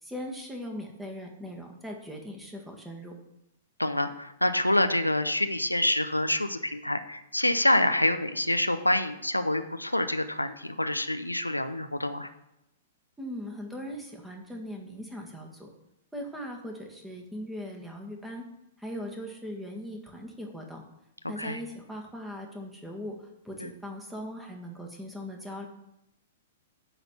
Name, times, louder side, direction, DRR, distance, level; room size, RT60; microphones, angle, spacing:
voice 1, 0.0-3.1 13.2-15.7 16.1-18.4 18.8-20.8 21.3-23.2 23.4-25.7, equal, 5° right, 1 dB, 1.7 m, -39 dB
voice 2, 3.8-12.3 21.4-21.6 23.6-23.7, left 1 dB, 90° left, 9 dB, 0.6 m, -27 dB
9.7 x 4.2 x 7.0 m, 0.84 s
figure-of-eight pair, 105°, 0 cm